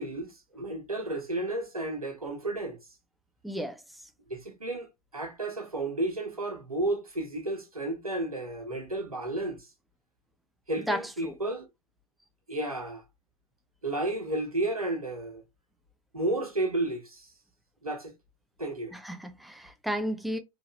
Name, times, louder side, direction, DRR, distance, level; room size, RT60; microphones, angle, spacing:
voice 1, 0.0-2.8 4.3-9.7 10.7-11.7 12.5-13.0 13.8-15.4 16.1-17.3 17.8-18.1 18.6-19.0, right 2 dB, 90° right, 1.4 m, -32 dB
voice 2, 3.4-3.8 10.9-11.3 18.9-20.4, equal, ahead, 0.9 m, -33 dB
4.8 x 3.5 x 3.1 m
figure-of-eight pair, 80°, 18 cm